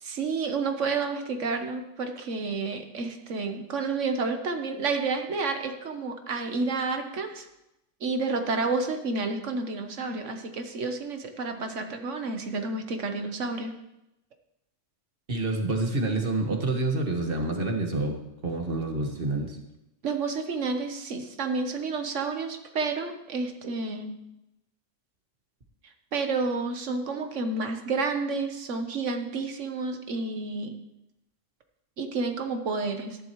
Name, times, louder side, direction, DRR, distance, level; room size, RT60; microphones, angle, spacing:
voice 1, 0.0-7.5 8.0-13.7 20.0-24.2 25.8-30.8 32.0-33.2, right 4 dB, 65° right, 6 dB, 1.4 m, -30 dB
voice 2, 15.3-18.1 18.4-19.6, right 2 dB, 45° right, 2 dB, 1.8 m, -27 dB
14.5 x 11.0 x 3.1 m, 0.89 s
omnidirectional pair, 1.4 m